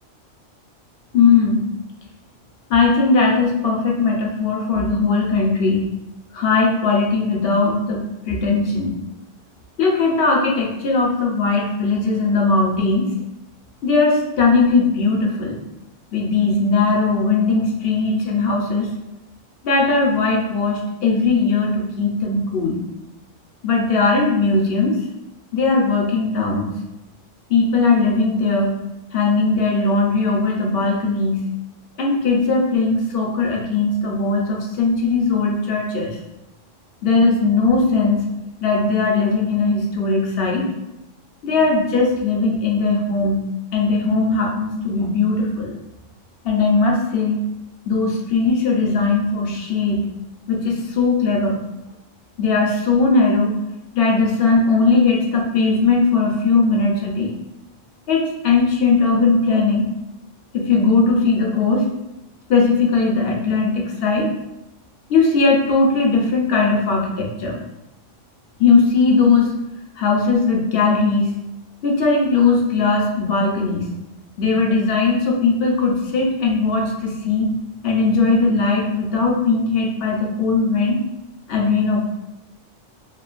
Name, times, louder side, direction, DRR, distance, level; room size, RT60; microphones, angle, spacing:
voice 1, 1.1-1.6 2.7-5.9 6.3-8.9 9.8-13.1 13.8-15.6 16.1-18.9 19.6-22.8 23.6-24.9 25.5-26.7 27.5-28.7 29.1-31.4 32.0-36.2 37.0-38.2 38.6-40.7 41.4-43.4 43.7-45.8 46.4-47.4 47.9-50.1 50.5-51.6 52.4-53.6 53.9-57.3 58.1-59.9 60.5-61.9 62.5-64.3 65.1-67.6 68.6-69.6 70.0-71.3 71.8-73.9 74.4-77.5 77.8-81.0 81.5-82.1, left 4 dB, 60° left, -1 dB, 0.6 m, -18 dB
3.0 x 2.2 x 2.4 m, 0.95 s
omnidirectional pair, 1.3 m